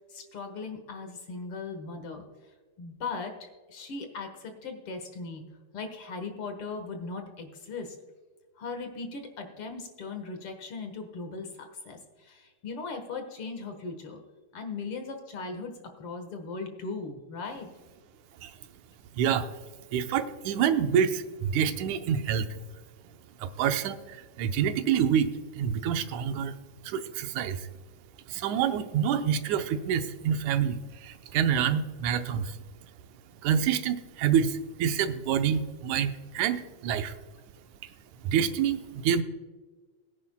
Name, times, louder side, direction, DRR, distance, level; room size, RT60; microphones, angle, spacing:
voice 1, 0.1-2.3 2.8-5.4 5.7-8.0 8.6-14.2 14.5-17.7, left 4 dB, 55° left, 6 dB, 2.0 m, -38 dB
voice 2, 19.1-19.5 19.9-22.6 23.4-26.6 26.8-27.7 28.3-32.6 33.4-37.1 38.2-39.2, right 8 dB, 85° right, 8 dB, 2.2 m, -27 dB
21.5 x 10.0 x 2.2 m, 1.4 s
omnidirectional pair, 3.3 m